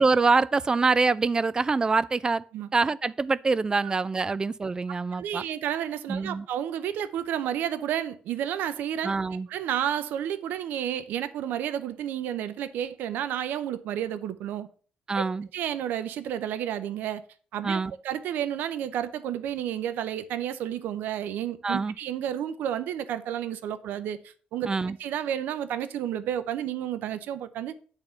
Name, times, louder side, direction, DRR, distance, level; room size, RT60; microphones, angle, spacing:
voice 1, 0.0-2.4 2.7-5.4 6.1-6.5 9.0-9.5 15.1-15.5 17.6-17.9 21.6-21.9 24.6-25.0, right 4 dB, 25° right, 0.4 m, -25 dB
voice 2, 5.1-9.1 9.5-14.7 15.1-15.2 15.5-17.2 17.5-17.8 18.0-24.7 25.0-27.7, right 10 dB, 85° right, 0.6 m, -31 dB
9.0 x 3.6 x 6.7 m
cardioid pair, 105°, 3 cm